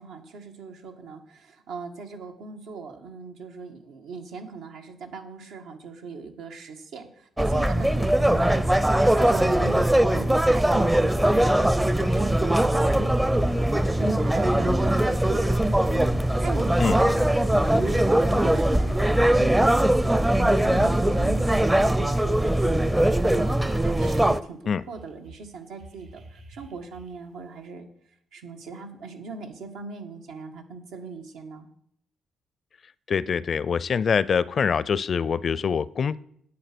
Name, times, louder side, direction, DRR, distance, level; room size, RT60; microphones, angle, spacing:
voice 1, 0.0-8.7 9.2-22.9 23.3-24.6 24.9-27.9 28.3-31.7, right 4 dB, 85° right, 4 dB, 1.6 m, -40 dB
sound 1, 7.4-24.4, right 1 dB, 10° right, 0.5 m, -21 dB
sound 2, 24.9-27.4, right 1 dB, 70° right, 2.2 m, -48 dB
voice 2, 33.1-36.2, left 6 dB, 50° left, 20 dB, 0.4 m, -24 dB
9.5 x 7.9 x 6.1 m, 0.69 s
cardioid pair, 90°, 0 cm